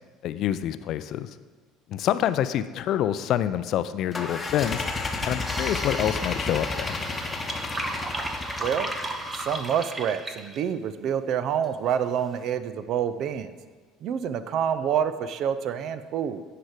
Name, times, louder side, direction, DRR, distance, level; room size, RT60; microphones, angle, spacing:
voice 1, 0.2-1.3 1.9-4.8 5.3-7.0, left 11 dB, 55° left, 13 dB, 0.4 m, -27 dB
sound 1, 4.1-9.7, left 3 dB, 25° left, 0.9 m, -32 dB
sound 2, 5.5-10.6, right 2 dB, 25° right, 0.9 m, -35 dB
voice 2, 9.4-13.5 14.0-16.4, right 8 dB, 55° right, 12 dB, 0.4 m, -27 dB
9.9 x 4.8 x 4.9 m, 1.4 s
hypercardioid pair, 65°, 0 cm